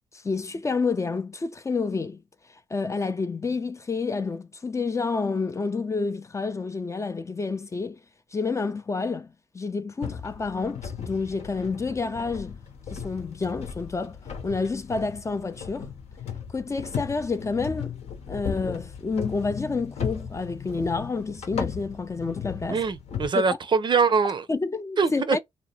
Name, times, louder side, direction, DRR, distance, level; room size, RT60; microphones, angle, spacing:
voice 1, 0.1-2.2 2.7-8.0 8.3-12.6 12.9-14.2 14.4-15.9 16.5-17.9 18.3-22.8 23.3-23.4 24.5-25.4, left 4 dB, 25° left, 0.4 m, -29 dB
sound 1, 10.0-23.3, left 7 dB, 70° left, 0.9 m, -36 dB
voice 2, 22.7-24.4 25.0-25.4, right 5 dB, 45° right, 0.5 m, -23 dB
2.8 x 2.1 x 2.7 m
supercardioid pair, 60°, 11 cm